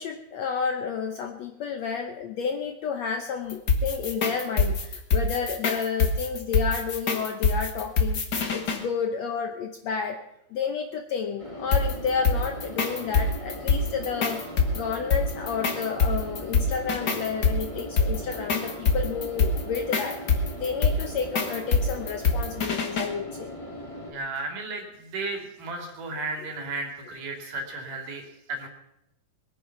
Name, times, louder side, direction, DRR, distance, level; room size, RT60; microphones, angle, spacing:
voice 1, 0.0-8.2 8.5-10.2 10.5-14.4 14.7-20.2 20.6-23.5, left 6 dB, 75° left, 5 dB, 1.6 m, -31 dB
sound 1, 3.5-8.8 11.7-23.1, left 4 dB, 50° left, 1.2 m, -25 dB
sound 2, 11.4-24.1, equal, 30° left, 0.6 m, -40 dB
voice 2, 24.1-28.7, right 3 dB, 65° right, 3 dB, 4.0 m, -34 dB
21.5 x 9.7 x 5.8 m, 0.83 s
omnidirectional pair, 4.2 m